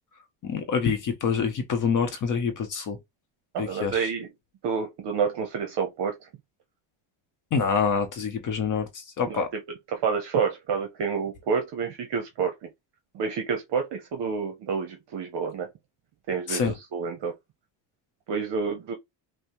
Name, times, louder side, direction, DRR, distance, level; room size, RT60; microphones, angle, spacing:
voice 1, 0.4-3.0 3.6-4.1 7.5-9.5 16.5-16.7, left 6 dB, 40° left, 0.7 m, -26 dB
voice 2, 3.5-4.3 4.6-6.3 9.3-9.6 9.9-12.7 13.1-15.7 16.3-17.3 18.3-18.9, right 6 dB, 55° right, 0.9 m, -29 dB
5.3 x 2.1 x 3.0 m
cardioid pair, 155°, 50 cm